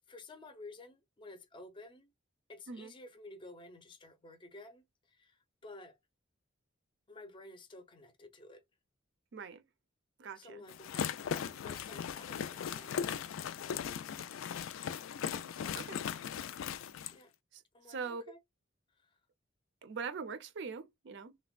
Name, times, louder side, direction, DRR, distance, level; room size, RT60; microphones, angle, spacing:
voice 1, 0.0-2.1 2.5-6.0 7.1-8.6 10.4-11.1 11.6-13.1 15.5-15.8 17.1-17.3 17.7-18.4 19.0-19.1, left 2 dB, 25° left, 0.5 m, -52 dB
voice 2, 9.3-9.6 10.2-10.6 15.7-16.0 17.5-17.6 17.9-18.2 19.8-21.3, right 5 dB, 60° right, 0.4 m, -42 dB
sound 1, 10.7-17.2, left 8 dB, 85° left, 0.3 m, -38 dB
3.2 x 2.2 x 2.3 m
head